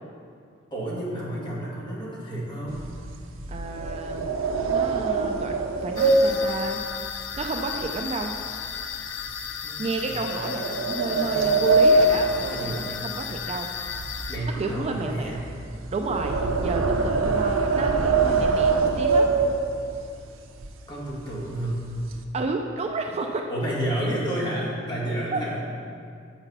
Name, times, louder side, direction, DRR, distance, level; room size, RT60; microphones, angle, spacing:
voice 1, 0.7-2.9 9.6-9.8 10.0-10.2 11.1-11.8 12.4-12.9 14.3-15.4 20.9-21.8 23.5-25.6, right 1 dB, 25° left, -6 dB, 2.0 m, -30 dB
sound 1, 2.7-8.0 8.3-8.7 9.2-9.3 10.1-13.5 13.7-20.0 20.6-20.7 21.0-21.2 21.6-22.2, right 3 dB, 85° right, 0.7 m, -24 dB
voice 2, 3.5-4.2 4.7-6.8 7.4-8.3 9.8-13.7 14.6-15.4 15.9-19.3 22.3-23.4 25.3-25.4, right 3 dB, 30° right, 3 dB, 0.4 m, -31 dB
sound 2, 6.0-14.4, left 8 dB, 70° left, 0.6 m, -35 dB
8.0 x 6.0 x 5.6 m, 2.4 s
head